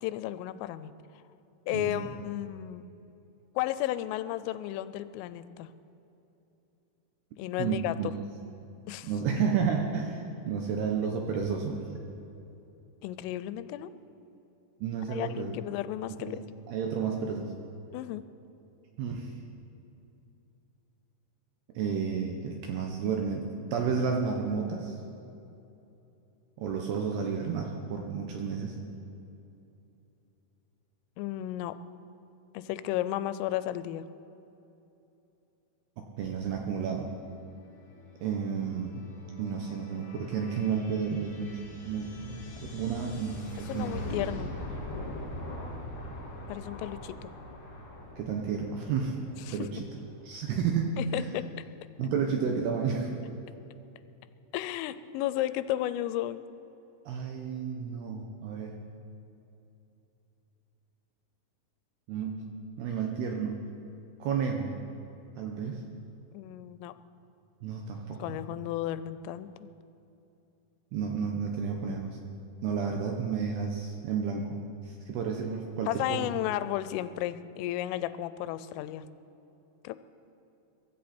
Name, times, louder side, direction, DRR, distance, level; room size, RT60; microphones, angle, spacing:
voice 1, 0.0-0.9 1.7-2.8 3.6-5.7 7.4-7.9 8.9-9.1 13.0-13.9 15.1-16.5 17.9-18.2 31.2-31.8 32.5-34.0 43.7-44.5 46.5-47.3 49.5-49.6 51.0-51.4 54.5-56.4 66.3-66.9 68.2-69.7 75.9-79.0 79.8-80.0, left 14 dB, 90° left, 13 dB, 3.2 m, -33 dB
voice 2, 1.7-2.1 7.6-8.2 9.1-11.9 14.8-15.6 16.2-16.4 16.7-17.6 19.0-19.3 21.7-25.0 26.6-28.8 36.2-37.1 38.2-38.9 39.4-41.6 41.8-42.4 42.7-44.0 48.2-49.2 49.5-49.8 50.2-51.3 52.0-53.1 57.1-58.8 62.1-62.4 62.8-63.6 64.2-64.8 65.4-65.8 67.6-68.4 70.9-72.2 72.6-76.3, right 6 dB, 75° right, 2 dB, 2.4 m, -31 dB
Blast Off, 37.5-51.0, left 1 dB, 45° left, 4.5 m, -43 dB
23.5 x 14.0 x 4.3 m, 2.9 s
omnidirectional pair, 5.7 m